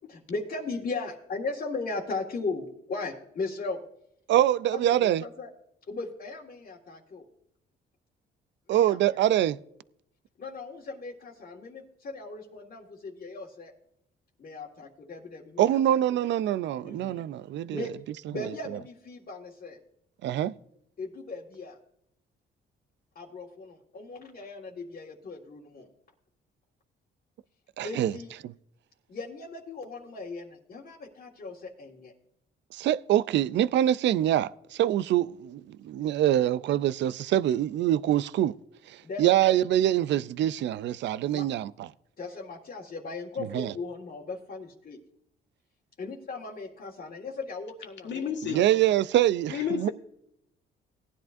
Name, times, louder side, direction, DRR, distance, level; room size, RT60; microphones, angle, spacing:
voice 1, 0.1-3.8 4.7-5.5 5.9-7.2 8.7-9.0 10.4-13.7 14.4-16.0 16.8-17.2 17.7-17.9 18.3-19.8 21.0-21.8 23.2-25.9 27.8-28.3 29.1-32.1 39.0-39.2 41.3-41.5 42.2-45.0 46.0-48.6 49.7-49.9, left 3 dB, 45° left, 1.7 m, -37 dB
voice 2, 4.3-5.2 8.7-9.6 15.6-17.9 18.3-18.5 20.2-20.5 27.8-28.1 28.4-28.5 32.7-38.5 38.9-41.9 43.5-43.7 48.4-49.9, right 12 dB, 65° right, 0.4 m, -25 dB
voice 3, 48.0-48.6 49.5-49.9, left 8 dB, 65° left, 1.8 m, -31 dB
18.0 x 10.5 x 2.6 m
cardioid pair, 90°, 20 cm